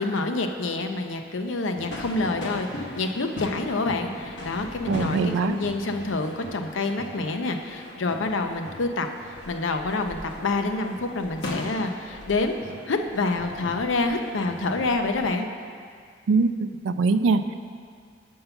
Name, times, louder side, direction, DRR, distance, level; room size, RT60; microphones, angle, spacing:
voice 1, 0.0-9.1 9.5-12.6 12.9-15.5, left 3 dB, 85° left, 5 dB, 0.6 m, -27 dB
sound 1, 1.7-15.3, left 1 dB, 65° left, 1.0 m, -39 dB
voice 2, 4.9-5.6 16.3-17.4, right 4 dB, 85° right, 11 dB, 0.4 m, -22 dB
5.7 x 5.5 x 6.7 m, 2.1 s
head